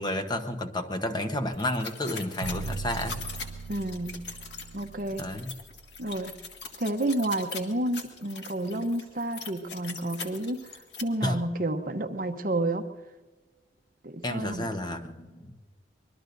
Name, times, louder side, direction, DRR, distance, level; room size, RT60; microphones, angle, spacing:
voice 1, 0.0-3.2 5.2-5.5 11.2-11.4 14.2-15.6, left 1 dB, 25° left, 6 dB, 1.0 m, -31 dB
sound 1, 1.5-11.0, left 4 dB, 70° left, 1.8 m, -41 dB
sound 2, 2.4-6.5, right 4 dB, 90° right, 0.5 m, -39 dB
voice 2, 3.7-4.2 4.7-5.2 6.0-6.4 6.8-10.6 11.0-12.9 14.0-14.7, right 1 dB, 50° right, 7 dB, 0.9 m, -30 dB
25.0 x 21.5 x 2.7 m, 1.3 s
head